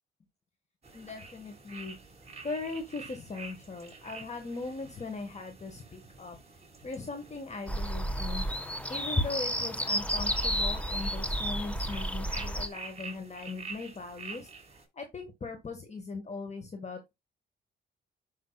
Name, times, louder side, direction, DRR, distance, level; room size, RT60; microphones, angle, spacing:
sound 1, 0.8-14.9, right 4 dB, 30° right, 5.8 m, -49 dB
voice 1, 0.9-2.0 2.4-6.4 6.8-8.5 8.9-14.5 14.9-17.1, left 3 dB, 35° left, 1.8 m, -39 dB
sound 2, 7.7-12.7, equal, 5° left, 1.5 m, -31 dB
10.5 x 5.8 x 2.4 m
cardioid pair, 90°, 20 cm